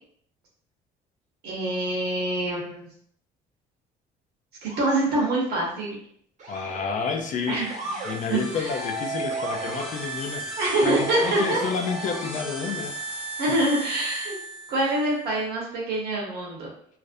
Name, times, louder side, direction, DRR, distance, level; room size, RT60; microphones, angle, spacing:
voice 1, 1.4-2.9 4.6-6.0 7.5-7.7 8.3-8.7 10.6-11.6 13.4-14.4 14.7-16.7, right 1 dB, 75° right, -3 dB, 1.0 m, -25 dB
Motor vehicle (road) / Siren, 4.6-5.0 6.4-7.0 7.7-8.2 9.3-9.9 11.2-11.8, right 2 dB, 45° right, 0.6 m, -37 dB
voice 2, 6.5-7.6 8.1-13.0 13.5-13.6, left 5 dB, 50° left, 4 dB, 0.4 m, -30 dB
sound 1, 7.4-15.1, right 2 dB, ahead, 0.7 m, -35 dB
2.5 x 2.0 x 2.5 m, 0.64 s
cardioid pair, 110°, 17 cm